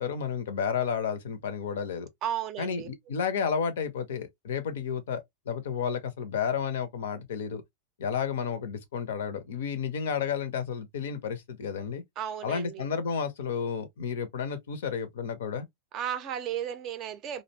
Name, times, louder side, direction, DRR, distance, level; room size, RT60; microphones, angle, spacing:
voice 1, 0.0-2.1 2.6-7.6 8.0-12.0 12.4-15.7, left 7 dB, 60° left, 0.5 m, -31 dB
voice 2, 2.2-2.9 12.2-12.8 15.9-17.4, right 10 dB, 35° right, 0.4 m, -34 dB
2.5 x 2.1 x 2.7 m
figure-of-eight pair, 90°, 0 cm